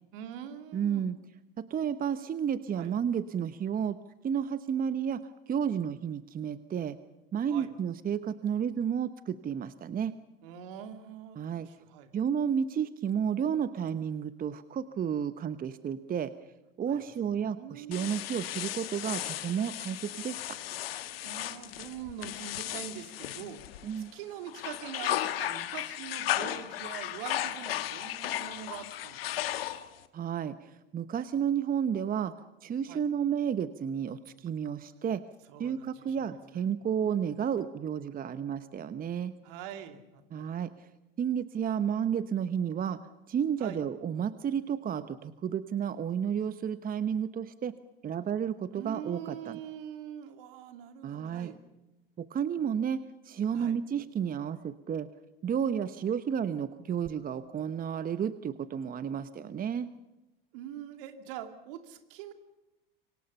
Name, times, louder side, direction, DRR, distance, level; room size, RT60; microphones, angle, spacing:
voice 1, 0.1-1.1 2.8-2.9 7.5-7.7 10.4-12.1 16.9-17.0 17.4-18.2 21.2-23.7 24.0-29.5 32.9-33.0 35.5-36.6 39.4-40.5 43.6-43.8 48.7-51.6 53.5-53.8 60.5-62.3, right 9 dB, 65° right, 7 dB, 2.8 m, -44 dB
voice 2, 0.7-1.2 1.6-4.0 4.2-5.2 5.5-7.0 7.3-10.1 11.4-11.7 12.1-16.3 16.8-20.4 23.8-24.1 30.1-32.3 32.6-35.2 35.6-39.3 40.3-40.7 41.2-43.0 43.3-47.7 48.0-49.6 51.0-51.5 52.2-53.0 53.2-55.1 55.4-59.9, right 8 dB, 30° right, 13 dB, 1.1 m, -31 dB
sound 1, 17.9-24.1 24.5-30.0, left 13 dB, 80° left, 1.5 m, -35 dB
27.5 x 24.5 x 5.6 m, 0.97 s
hypercardioid pair, 80°, 29 cm